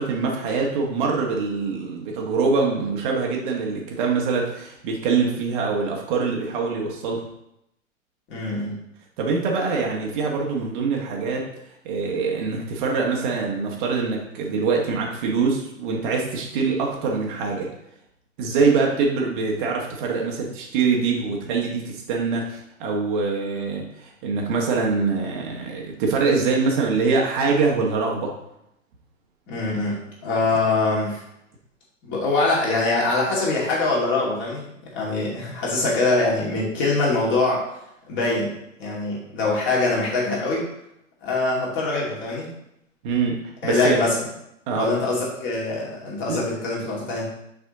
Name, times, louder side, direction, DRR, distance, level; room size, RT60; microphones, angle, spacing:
voice 1, 0.0-7.3 9.2-11.4 11.8-17.7 18.4-28.3 43.0-44.0 44.7-44.9 46.3-46.5, right 4 dB, 40° right, -1 dB, 1.2 m, -24 dB
voice 2, 8.3-8.8 29.5-31.2 32.0-34.6 34.9-37.6 38.1-38.5 38.8-40.6 41.2-42.5 43.6-44.1 44.7-47.3, left 3 dB, 30° left, -4 dB, 2.4 m, -23 dB
6.0 x 4.9 x 3.9 m, 0.79 s
figure-of-eight pair, 105°, 40 cm